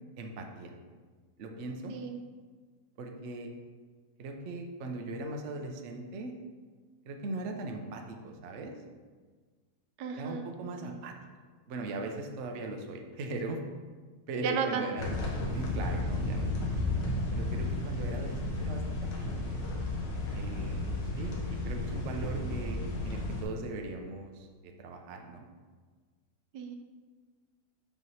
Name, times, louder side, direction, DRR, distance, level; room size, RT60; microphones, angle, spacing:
voice 1, 0.2-0.7 1.4-1.9 3.0-3.5 4.2-6.3 7.1-8.7 10.1-11.1 11.7-13.6 14.3-16.5 17.3-19.3 19.5-19.6 20.3-25.4, right 2 dB, 60° right, 3 dB, 0.7 m, -39 dB
voice 2, 1.9-2.2 10.0-11.0 14.4-14.9 26.5-26.8, right 5 dB, 85° right, 5 dB, 1.2 m, -34 dB
sound 1, 15.0-23.4, left 2 dB, 85° left, 1.6 m, -33 dB
5.6 x 3.1 x 5.5 m, 1.5 s
omnidirectional pair, 1.8 m